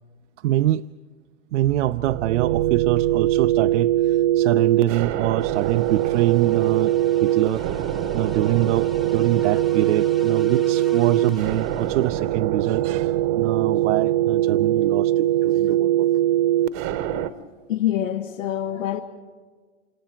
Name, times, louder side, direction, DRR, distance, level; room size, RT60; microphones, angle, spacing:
voice 1, 0.4-0.9 1.5-6.9 7.2-7.6 8.1-16.2, right 14 dB, 65° right, 0.5 m, -24 dB
sound 1, 1.6-17.3, right 14 dB, 40° right, 0.9 m, -22 dB
sound 2, 5.4-12.4, right 1 dB, ahead, 1.0 m, -39 dB
voice 2, 17.1-19.0, left 11 dB, 85° left, 1.2 m, -27 dB
28.0 x 27.0 x 4.5 m
hypercardioid pair, 120°, 38 cm